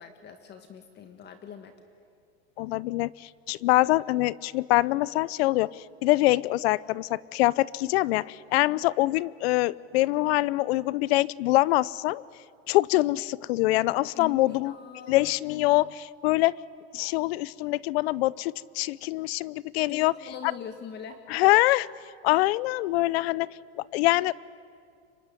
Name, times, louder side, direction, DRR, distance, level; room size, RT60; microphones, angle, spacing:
voice 1, 0.0-1.7 14.1-15.2 19.9-21.2, left 7 dB, 30° left, 7 dB, 1.8 m, -42 dB
voice 2, 2.6-3.1 3.5-5.7 6.0-12.2 12.7-14.7 15.1-16.5 16.9-20.1 21.3-21.9 22.2-23.5 23.8-24.3, left 19 dB, 70° left, 22 dB, 0.7 m, -24 dB
25.5 x 23.5 x 9.8 m, 2.3 s
supercardioid pair, 135°, 33 cm